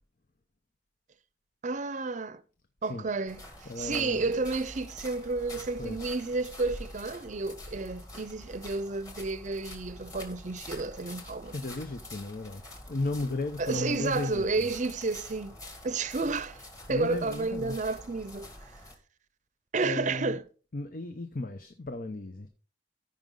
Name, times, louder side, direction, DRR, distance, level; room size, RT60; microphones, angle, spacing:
voice 1, 1.6-2.4 2.8-3.4 3.8-11.5 13.6-15.6 15.8-16.6 16.9-18.5 19.7-20.4, right 3 dB, 45° right, 0.6 m, -31 dB
sound 1, 3.3-18.9, left 1 dB, 20° left, 1.9 m, -46 dB
voice 2, 3.7-4.3 5.8-6.1 11.5-12.6 12.9-14.7 16.9-17.8 19.8-20.4 20.7-22.5, left 2 dB, 55° left, 0.8 m, -35 dB
14.5 x 5.3 x 3.8 m
head